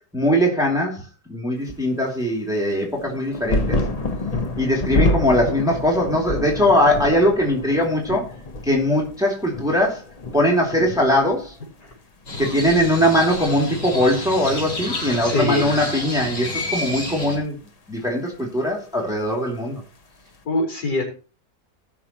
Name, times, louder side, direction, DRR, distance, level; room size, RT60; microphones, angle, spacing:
voice 1, 0.1-1.0 1.3-3.8 4.6-8.3 8.7-10.0 10.3-11.5 12.4-17.6 17.9-19.8, equal, ahead, -1 dB, 2.5 m, -20 dB
sound 1, 2.9-12.0 12.3-13.2 14.1-14.2, left 2 dB, 40° left, 0.5 m, -27 dB
Crow, 12.3-17.4, left 1 dB, 85° left, 4.1 m, -30 dB
voice 2, 15.2-15.7 20.4-21.0, left 2 dB, 70° left, 1 dB, 4.7 m, -23 dB
18.5 x 6.4 x 2.9 m, 0.35 s
omnidirectional pair, 1.9 m